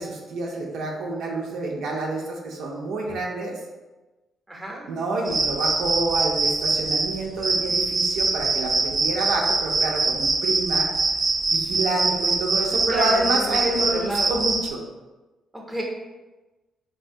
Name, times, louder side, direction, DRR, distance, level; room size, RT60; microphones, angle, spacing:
voice 1, 0.0-3.5 4.9-10.9 11.5-14.8, right 2 dB, 80° right, -1 dB, 0.5 m, -28 dB
voice 2, 4.5-4.8 12.9-14.4 15.5-15.8, equal, 10° right, -1 dB, 0.7 m, -31 dB
sound 1, 5.2-14.7, right 3 dB, 30° right, 0.3 m, -24 dB
3.3 x 2.7 x 2.7 m, 1.1 s
cardioid pair, 90°, 0 cm